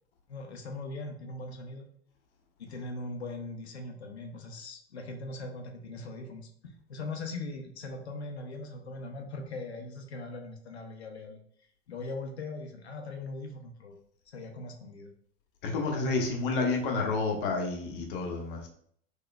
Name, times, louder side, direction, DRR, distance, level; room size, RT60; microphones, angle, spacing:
voice 1, 0.3-1.9 2.6-11.4 11.9-13.9 14.3-15.1, left 2 dB, 75° left, 4 dB, 0.7 m, -40 dB
voice 2, 15.6-18.7, left 3 dB, 55° left, 1 dB, 0.9 m, -30 dB
3.7 x 3.1 x 2.2 m, 0.63 s
figure-of-eight pair, 80°, 33 cm